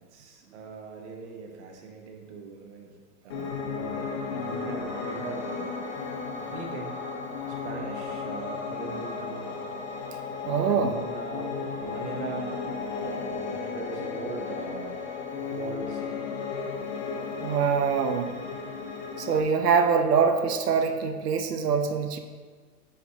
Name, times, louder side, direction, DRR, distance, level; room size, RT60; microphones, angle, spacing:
voice 1, 0.1-3.0 3.2-5.7 6.4-7.0 7.5-9.6 10.6-12.5 13.0-15.0 15.4-16.3, right 4 dB, 45° right, 2 dB, 1.2 m, -40 dB
Piano, 3.3-19.4, left 4 dB, 40° left, 1.1 m, -34 dB
voice 2, 10.5-11.0 17.4-18.3 19.2-22.2, right 6 dB, 75° right, 7 dB, 0.8 m, -24 dB
9.3 x 4.2 x 2.8 m, 1.5 s
hypercardioid pair, 120°, 47 cm